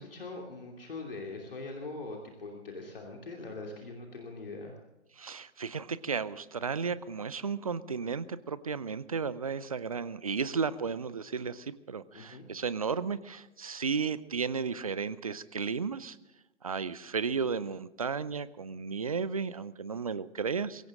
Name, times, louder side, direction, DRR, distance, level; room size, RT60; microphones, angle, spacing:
voice 1, 0.0-4.8 12.1-12.5, left 3 dB, 50° left, 1 dB, 2.9 m, -42 dB
voice 2, 5.2-16.2 16.6-20.9, right 5 dB, 30° right, 17 dB, 0.6 m, -34 dB
22.5 x 16.0 x 3.8 m, 1.0 s
figure-of-eight pair, 140°, 36 cm